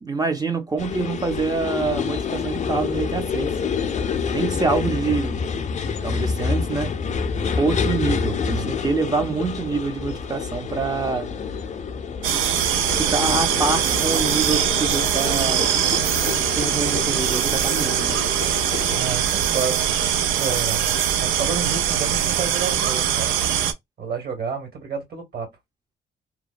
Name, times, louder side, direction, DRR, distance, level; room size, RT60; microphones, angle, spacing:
voice 1, 0.0-3.6 4.3-5.5 6.0-6.9 7.5-11.3 13.0-15.6 16.6-18.2, right 4 dB, 20° right, 0.6 m, -26 dB
sound 1, 0.8-19.0, left 6 dB, 35° left, 0.5 m, -28 dB
sound 2, 12.2-23.7, right 9 dB, 85° right, 0.5 m, -22 dB
voice 2, 18.9-19.8 20.4-20.9 21.2-23.3 24.0-25.5, right 5 dB, 50° right, 1.8 m, -30 dB
2.9 x 2.1 x 2.4 m
cardioid pair, 90°, 20 cm